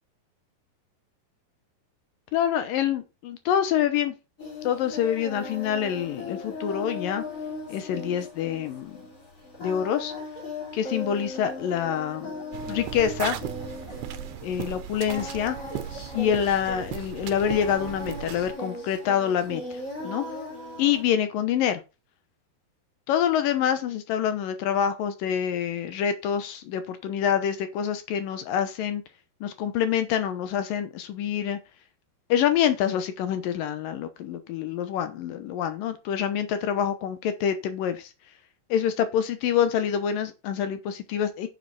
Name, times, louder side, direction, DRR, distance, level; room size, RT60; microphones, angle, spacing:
voice 1, 2.3-4.1 4.6-7.2 7.7-9.0 9.6-10.1 10.7-12.3 12.7-13.4 14.4-15.6 16.1-19.8 20.0-20.3 20.8-21.8 23.1-29.0 29.4-31.6 32.3-38.1 38.7-41.5, left 9 dB, 70° left, 10 dB, 2.4 m, -26 dB
Singing, 4.4-21.0, left 2 dB, 20° left, 3.4 m, -38 dB
sound 1, 12.5-18.5, right 11 dB, 85° right, 3.1 m, -37 dB
9.7 x 7.1 x 4.2 m, 0.29 s
omnidirectional pair, 4.6 m